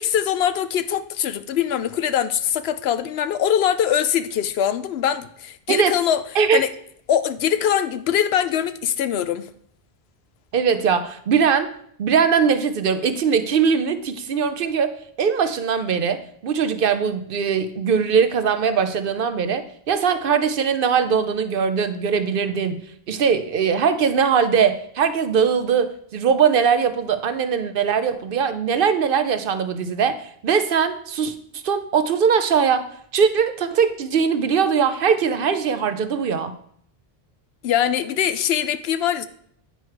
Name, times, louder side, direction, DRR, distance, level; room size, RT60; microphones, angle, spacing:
voice 1, 0.0-6.2 6.5-6.7 7.1-9.4 37.6-39.2, left 9 dB, 85° left, 13 dB, 0.8 m, -22 dB
voice 2, 10.5-11.7 12.0-14.9 15.2-32.9 33.1-36.5, right 6 dB, 65° right, 10 dB, 0.8 m, -21 dB
9.2 x 4.6 x 4.7 m, 0.64 s
omnidirectional pair, 1.0 m